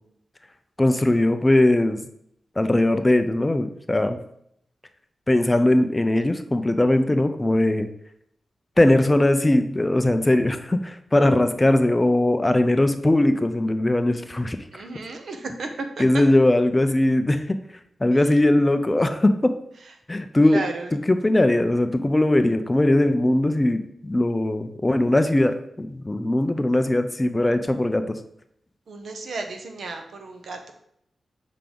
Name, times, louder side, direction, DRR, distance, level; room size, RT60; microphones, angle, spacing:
voice 1, 0.8-2.0 2.6-4.2 5.3-7.9 8.8-14.6 16.0-17.4 18.0-19.5 20.1-20.6 20.9-28.2, left 1 dB, 15° left, 8 dB, 0.4 m, -20 dB
voice 2, 14.7-15.7 16.0-16.1 20.5-21.0 28.9-30.7, right 3 dB, 65° right, 5 dB, 0.9 m, -34 dB
5.7 x 3.8 x 5.1 m, 0.72 s
wide cardioid pair, 160°, 0 cm